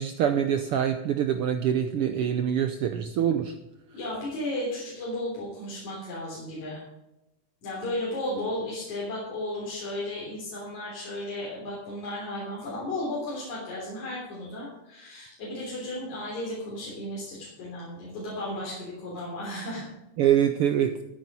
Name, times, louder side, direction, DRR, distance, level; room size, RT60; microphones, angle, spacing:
voice 1, 0.0-3.6 20.2-20.9, right 9 dB, 80° right, 8 dB, 1.3 m, -25 dB
voice 2, 3.9-6.8 7.6-19.9, left 1 dB, 75° left, -5 dB, 4.9 m, -34 dB
14.0 x 9.1 x 5.5 m, 0.93 s
omnidirectional pair, 3.4 m